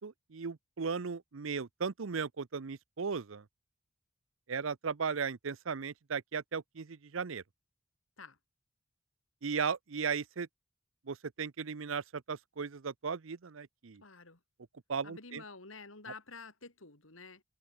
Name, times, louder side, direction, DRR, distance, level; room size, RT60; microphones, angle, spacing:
voice 1, 0.0-3.4 4.5-7.4 9.4-10.5 11.1-14.0 14.9-15.4, right 5 dB, 75° right, 0.7 m, -36 dB
voice 2, 14.0-14.4 15.0-17.4, left 4 dB, 85° left, 4.4 m, -50 dB
head